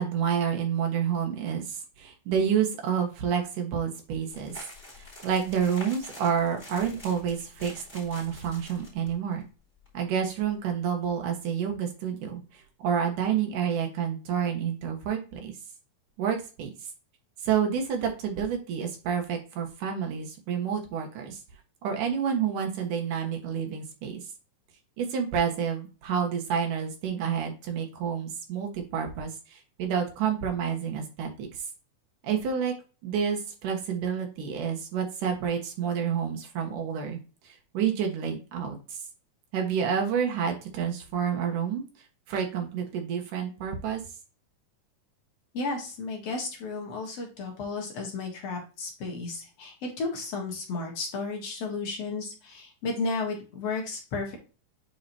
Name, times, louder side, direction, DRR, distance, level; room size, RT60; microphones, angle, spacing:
voice 1, 0.0-4.6 5.0-9.4 9.9-15.5 16.2-16.7 17.4-21.4 21.8-24.2 25.0-31.6 32.2-32.7 33.0-39.0 39.5-41.8 42.3-44.0, right 7 dB, 80° right, 3 dB, 2.9 m, -29 dB
sound 1, 4.3-9.1 9.4-9.5 9.8-9.9 10.3-10.5, left 1 dB, 15° left, 3.5 m, -46 dB
voice 2, 45.5-54.4, left 3 dB, 55° left, 0 dB, 2.5 m, -33 dB
8.8 x 4.7 x 2.8 m, 0.34 s
omnidirectional pair, 3.7 m